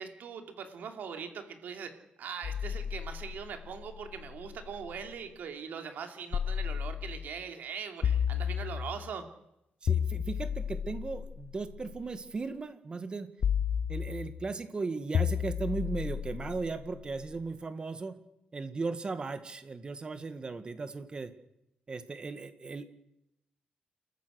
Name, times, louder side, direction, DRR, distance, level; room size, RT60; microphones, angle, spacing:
voice 1, 0.0-1.9 2.2-9.3, right 6 dB, 75° right, 6 dB, 2.9 m, -41 dB
sound 1, 2.4-5.2 6.3-7.4 8.0-9.1 9.9-12.1 13.4-14.5 15.1-17.3, left 8 dB, 55° left, 0.7 m, -33 dB
voice 2, 9.8-13.3 13.9-18.2 18.5-21.3 21.9-22.9, right 4 dB, 30° right, 10 dB, 1.8 m, -37 dB
28.5 x 14.5 x 6.5 m, 0.85 s
cardioid pair, 130°, 3 cm